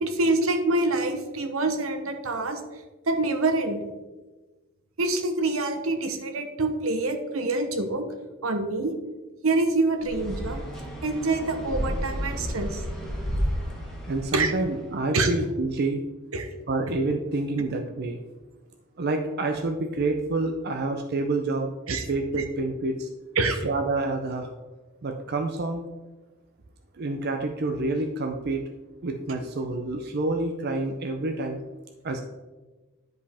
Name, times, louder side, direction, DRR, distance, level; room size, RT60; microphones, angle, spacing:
voice 1, 0.0-2.6 3.1-3.8 5.0-8.1 8.4-8.9 9.4-10.6 11.0-12.8 14.3-14.5 15.1-15.3 16.3-16.5 21.9-22.1 22.3-22.4 23.4-23.6, right 2 dB, 80° right, 7 dB, 0.9 m, -26 dB
sound 1, 10.0-14.9, equal, 5° left, 1.6 m, -32 dB
voice 2, 14.1-16.0 16.7-18.2 19.0-23.1 23.6-24.5 25.0-25.8 26.9-28.6 29.0-31.6 32.0-32.2, right 2 dB, 50° right, 4 dB, 0.6 m, -28 dB
10.5 x 5.0 x 3.5 m, 1.2 s
head